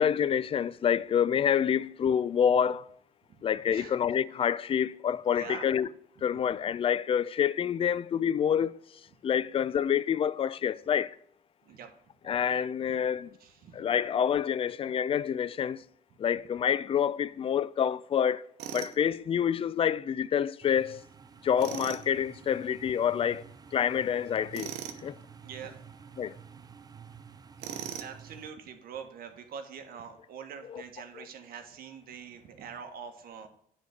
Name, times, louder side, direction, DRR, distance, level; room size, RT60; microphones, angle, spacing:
voice 1, 0.0-2.8 3.4-5.9 6.2-8.8 9.2-11.2 12.2-13.3 13.7-15.8 16.2-18.5 18.7-21.0 21.4-23.5 23.7-24.7 25.0-25.2 26.2-26.4 30.6-30.8 31.2-31.3, left 8 dB, 35° left, 0.4 m, -27 dB
voice 2, 5.4-5.7 11.6-11.9 13.4-13.8 25.4-25.7 27.9-33.5, right 7 dB, 60° right, 1.5 m, -44 dB
Tools, 18.6-19.0 21.6-22.0 24.5-25.0 27.6-28.2, right 9 dB, 85° right, 0.9 m, -38 dB
sound 1, 20.6-28.5, right 7 dB, 25° right, 0.5 m, -50 dB
9.6 x 4.1 x 6.4 m
cardioid pair, 110°, 17 cm